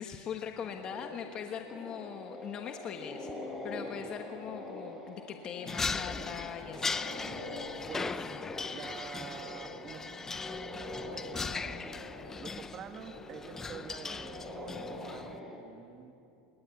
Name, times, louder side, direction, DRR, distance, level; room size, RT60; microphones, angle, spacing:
voice 1, 0.0-7.0, left 8 dB, 40° left, 5 dB, 1.3 m, -41 dB
sound 1, 0.6-15.6, left 1 dB, 5° right, 7.7 m, -44 dB
sound 2, 5.7-15.4, left 4 dB, 15° left, 0.9 m, -39 dB
voice 2, 7.9-8.3 8.7-10.0 11.0-11.6 12.4-16.1, right 8 dB, 40° right, 6 dB, 2.1 m, -47 dB
28.5 x 20.0 x 8.5 m, 2.6 s
supercardioid pair, 110°, 2 cm